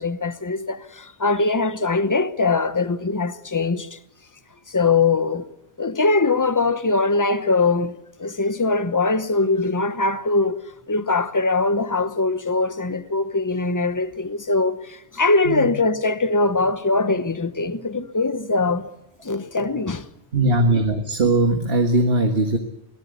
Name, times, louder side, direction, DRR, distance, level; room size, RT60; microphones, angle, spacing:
voice 1, 0.0-4.0 4.7-5.5 5.8-7.9 8.2-18.9 19.2-20.1, left 3 dB, 20° left, 1.0 m, -22 dB
voice 2, 20.3-22.6, right 2 dB, 60° right, 1.9 m, -19 dB
24.5 x 17.5 x 8.3 m
omnidirectional pair, 1.1 m